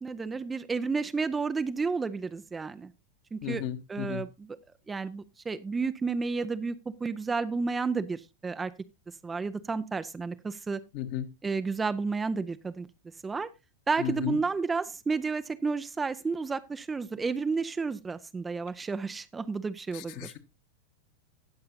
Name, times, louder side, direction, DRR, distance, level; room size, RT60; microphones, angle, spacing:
voice 1, 0.0-2.9 3.3-3.6 3.9-4.6 4.9-6.8 7.0-8.7 9.2-10.8 11.4-12.9 13.2-13.5 13.9-20.3, right 4 dB, 15° right, 12 dB, 0.5 m, -31 dB
voice 2, 3.4-4.2 10.9-11.2 14.0-14.4 19.9-20.4, left 11 dB, 45° left, 8 dB, 1.3 m, -34 dB
18.5 x 6.7 x 2.7 m, 0.24 s
figure-of-eight pair, 90°, 0 cm